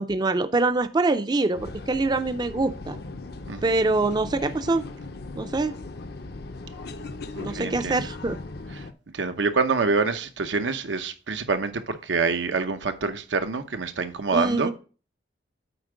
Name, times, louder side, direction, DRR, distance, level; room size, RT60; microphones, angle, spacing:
voice 1, 0.0-3.0 3.6-4.8 5.4-5.7 7.4-8.4 14.3-14.7, right 3 dB, 25° right, 0.4 m, -24 dB
sound 1, 1.5-8.9, left 2 dB, 60° left, 0.6 m, -38 dB
voice 2, 7.3-8.1 8.8-8.9 9.1-14.7, right 4 dB, 90° right, 0.8 m, -26 dB
8.0 x 4.5 x 5.0 m
head